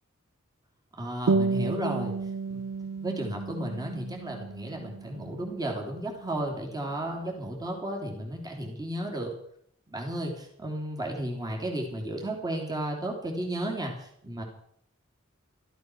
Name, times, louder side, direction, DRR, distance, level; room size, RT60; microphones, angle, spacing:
voice 1, 1.0-2.1 2.5-2.6 3.0-9.3 9.9-14.4, right 1 dB, 20° right, 0 dB, 3.1 m, -33 dB
sound 1, 1.3-6.3, right 4 dB, 70° right, 0.5 m, -32 dB
14.0 x 13.5 x 6.2 m, 0.65 s
head